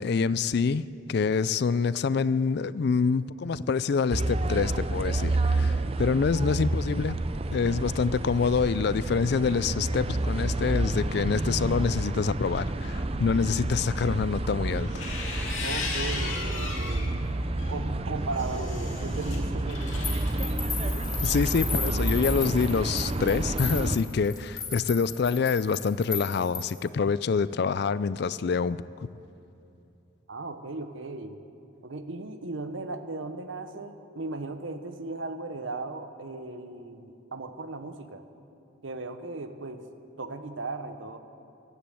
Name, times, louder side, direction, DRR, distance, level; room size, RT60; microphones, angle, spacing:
voice 1, 0.0-7.2 7.5-15.0 21.2-28.8, left 5 dB, 55° left, 17 dB, 0.4 m, -26 dB
sound 1, 4.1-24.0, right 2 dB, 30° right, 0.5 m, -29 dB
sound 2, 14.8-17.1 17.6-20.4, left 3 dB, 85° left, 2.3 m, -36 dB
voice 2, 15.6-17.1 17.7-20.0 30.3-31.4 31.8-38.2 38.8-39.8 40.2-41.2, right 3 dB, 75° right, 9 dB, 1.0 m, -36 dB
sound 3, 20.0-26.9, left 5 dB, 20° left, 1.8 m, -36 dB
15.5 x 10.5 x 7.8 m, 2.7 s
head